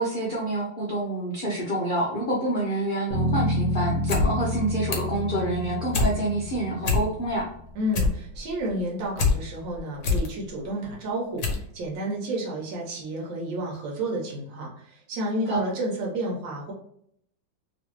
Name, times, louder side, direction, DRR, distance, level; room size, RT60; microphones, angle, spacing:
voice 1, 0.0-7.5 15.5-15.6, right 1 dB, 75° left, -4 dB, 0.4 m, -27 dB
Bass guitar, 3.1-7.5, left 1 dB, 55° right, 1.4 m, -29 dB
sound 1, 3.9-4.3 4.6-5.2 5.6-6.1 6.5-6.6 6.8-7.4 7.7-9.3 9.7-10.3 10.8-10.9 11.4-11.7 11.9-12.0, left 4 dB, 55° left, 0.9 m, -24 dB
voice 2, 7.7-16.7, right 1 dB, 85° right, -2 dB, 1.5 m, -31 dB
3.1 x 3.1 x 3.0 m, 0.68 s
omnidirectional pair, 2.0 m